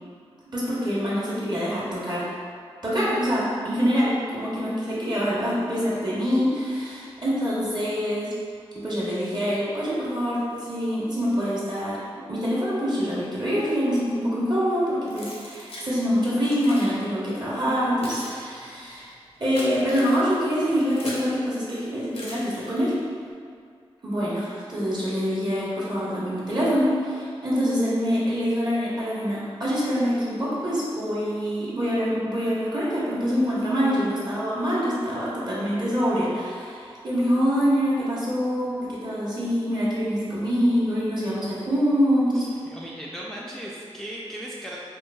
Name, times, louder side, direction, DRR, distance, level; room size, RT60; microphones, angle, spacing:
voice 1, 0.5-2.3 2.8-8.3 8.8-12.0 12.3-19.1 19.4-23.0 24.0-42.5, equal, 45° right, -8 dB, 1.0 m, -25 dB
Keys jangling, 15.1-15.9 16.5-16.9 17.7-21.4 22.1-23.0, left 1 dB, 75° left, 0.6 m, -40 dB
voice 2, 42.3-44.8, right 1 dB, 5° left, -5 dB, 0.3 m, -37 dB
3.0 x 2.4 x 2.2 m, 2.2 s
cardioid pair, 45°, 10 cm